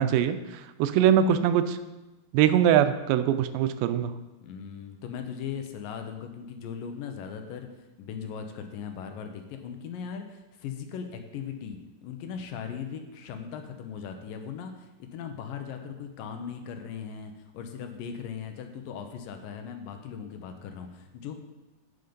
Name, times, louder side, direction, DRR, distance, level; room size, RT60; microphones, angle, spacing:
voice 1, 0.0-1.8 2.3-4.1, right 9 dB, 85° right, 11 dB, 2.3 m, -22 dB
voice 2, 4.4-21.4, left 7 dB, 80° left, 6 dB, 2.3 m, -39 dB
8.3 x 7.8 x 5.1 m, 1.1 s
omnidirectional pair, 4.2 m